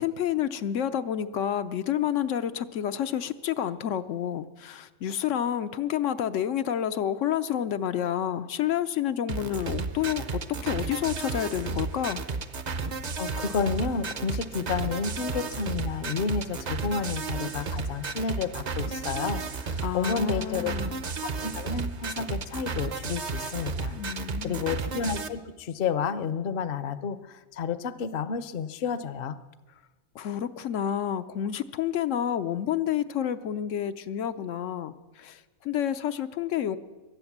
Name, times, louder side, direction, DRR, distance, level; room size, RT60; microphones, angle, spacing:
voice 1, 0.0-12.2 19.8-20.9 23.9-24.7 30.1-36.8, left 10 dB, 80° left, 10 dB, 1.0 m, -29 dB
sound 1, 9.3-25.3, right 4 dB, 45° right, 0.7 m, -33 dB
voice 2, 13.2-20.7 21.2-24.0 24.4-29.4, left 5 dB, 55° left, 13 dB, 0.8 m, -31 dB
23.0 x 8.7 x 7.3 m, 1.2 s
omnidirectional pair, 1.3 m